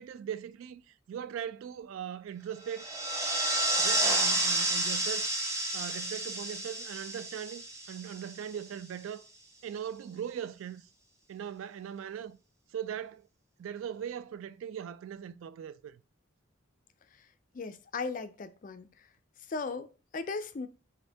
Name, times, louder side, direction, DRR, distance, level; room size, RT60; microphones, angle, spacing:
voice 1, 0.0-2.9 3.8-5.3 5.7-9.3 9.6-10.8 11.3-12.4 12.7-13.3 13.6-16.0, right 9 dB, 80° right, 0.3 m, -40 dB
sound 1, 2.7-8.5, right 1 dB, 15° right, 0.6 m, -30 dB
voice 2, 17.5-19.1 19.5-20.7, left 4 dB, 40° left, 0.4 m, -37 dB
5.4 x 2.6 x 3.3 m
head